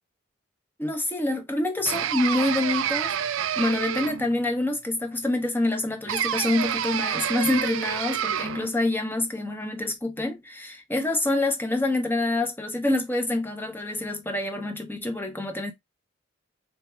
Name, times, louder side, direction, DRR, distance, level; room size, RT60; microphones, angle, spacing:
voice 1, 0.8-15.7, left 2 dB, 10° left, 0.8 m, -27 dB
sound 1, 1.9-4.4 6.1-8.7, right 9 dB, 85° right, 0.4 m, -28 dB
3.3 x 2.7 x 4.4 m
head